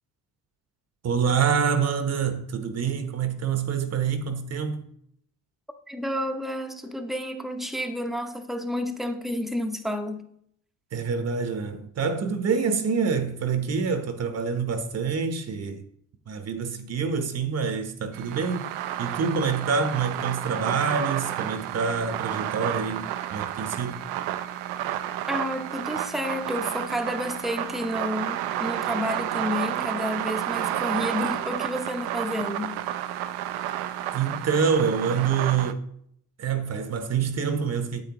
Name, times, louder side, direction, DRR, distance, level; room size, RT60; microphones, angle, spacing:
voice 1, 1.0-4.9 10.9-15.8 16.3-18.7 19.0-24.0 34.1-35.9 36.4-38.0, right 6 dB, 40° right, 0.8 m, -26 dB
voice 2, 5.9-10.3 25.3-32.8, left 1 dB, ahead, 0.7 m, -30 dB
sound 1, 18.1-35.7, right 12 dB, 90° right, 0.5 m, -31 dB
9.2 x 8.2 x 2.9 m
cardioid pair, 110°, 37 cm